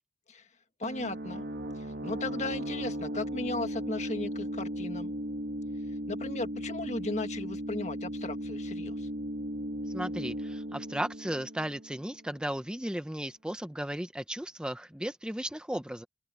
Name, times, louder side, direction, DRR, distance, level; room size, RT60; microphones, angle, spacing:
voice 1, 0.8-1.5 1.8-5.1 6.1-9.1, left 2 dB, 40° left, 1.7 m, -36 dB
sound 1, 0.8-12.3, equal, 65° right, 2.1 m, -37 dB
voice 2, 9.9-16.1, right 1 dB, 5° right, 0.7 m, -35 dB
head